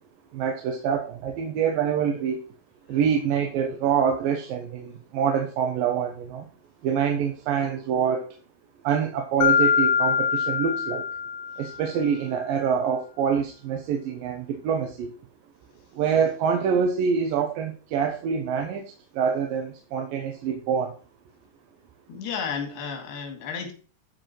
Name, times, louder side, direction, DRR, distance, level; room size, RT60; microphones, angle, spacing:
voice 1, 0.3-2.4 2.9-6.5 6.8-8.3 8.8-11.1 11.6-15.1 15.9-20.9, right 7 dB, 70° right, 2 dB, 2.7 m, -26 dB
Mallet percussion, 9.4-12.0, left 7 dB, 60° left, 2.1 m, -23 dB
voice 2, 22.1-23.7, left 6 dB, 90° left, 4 dB, 4.0 m, -32 dB
13.0 x 4.8 x 4.6 m, 0.37 s
omnidirectional pair, 4.5 m